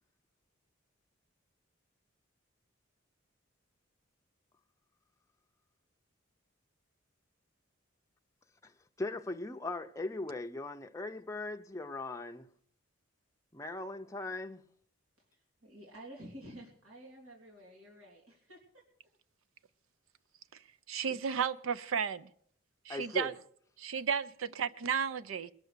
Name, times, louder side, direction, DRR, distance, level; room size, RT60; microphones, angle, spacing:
voice 1, 9.0-12.5 13.5-14.6 21.1-21.2 22.9-23.3, left 2 dB, 15° left, 0.5 m, -39 dB
voice 2, 15.6-18.8, right 1 dB, 90° right, 3.2 m, -51 dB
voice 3, 20.9-22.3 22.9-23.3 23.8-25.5, right 7 dB, 70° right, 0.5 m, -33 dB
20.5 x 6.9 x 6.6 m
head